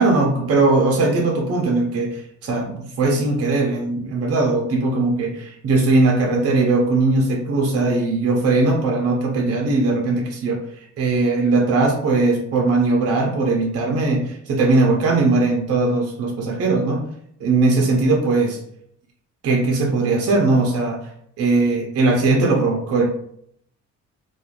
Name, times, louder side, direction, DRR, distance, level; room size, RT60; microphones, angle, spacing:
voice 1, 0.0-17.1 17.4-18.6 19.4-21.1 21.4-23.1, right 3 dB, 50° right, 0 dB, 0.6 m, -19 dB
3.0 x 2.3 x 2.4 m, 0.70 s
cardioid pair, 90°, 30 cm